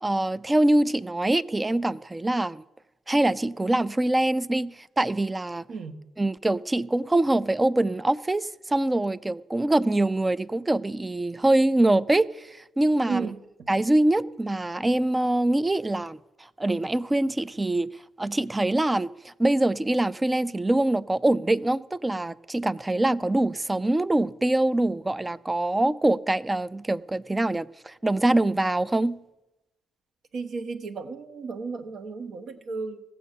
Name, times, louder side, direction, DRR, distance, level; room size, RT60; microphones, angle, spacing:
voice 1, 0.0-2.6 3.1-5.6 6.2-13.3 13.7-17.9 18.2-29.2, right 1 dB, 15° right, 0.4 m, -24 dB
voice 2, 13.1-13.4 30.3-33.0, right 4 dB, 60° right, 1.2 m, -33 dB
16.0 x 7.5 x 6.7 m
cardioid pair, 90°, 0 cm